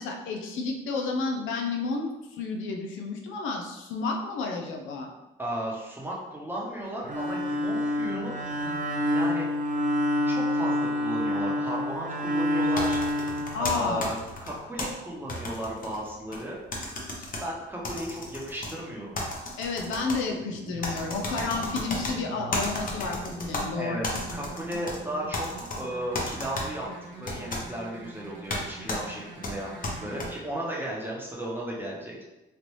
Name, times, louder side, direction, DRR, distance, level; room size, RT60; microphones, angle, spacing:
voice 1, 0.0-5.1 13.5-14.1 19.6-24.1, left 4 dB, 80° left, 2 dB, 0.5 m, -31 dB
voice 2, 5.4-8.4 9.1-9.5 10.2-13.0 13.6-14.2 14.4-16.6 17.4-19.2 23.7-25.4 25.8-26.9 27.2-29.7 30.0-32.1, right 1 dB, 10° right, -4 dB, 0.9 m, -35 dB
Bowed string instrument, 7.0-14.2, left 1 dB, 40° right, 0.5 m, -27 dB
sound 1, 12.8-14.9 15.3-16.4 16.7-17.4 17.8-18.7 19.1-20.2 20.8-22.1 22.5-23.6 24.0-25.0 25.3-25.8 26.1-26.7 27.3-27.6 28.5-28.6 28.9-29.0 29.4-30.3, left 2 dB, 45° left, 0.8 m, -33 dB
sound 2, 20.4-30.3, right 2 dB, 80° right, 0.8 m, -43 dB
3.2 x 2.5 x 3.0 m, 1.0 s
cardioid pair, 90°, 20 cm